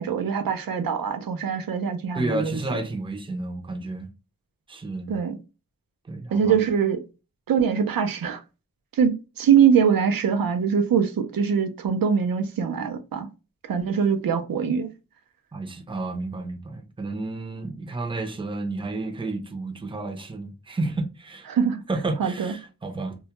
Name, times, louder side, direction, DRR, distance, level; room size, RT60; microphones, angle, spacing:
voice 1, 0.0-2.6 5.1-5.4 6.3-7.0 7.5-8.4 8.9-13.3 13.7-14.9 21.5-21.8 22.2-22.5, right 7 dB, 80° right, 0.5 m, -23 dB
voice 2, 2.1-4.1 4.7-5.2 6.1-6.6 15.5-21.5 21.9-23.2, right 2 dB, 15° right, 0.5 m, -31 dB
2.2 x 2.0 x 2.8 m
wide cardioid pair, 70°, 34 cm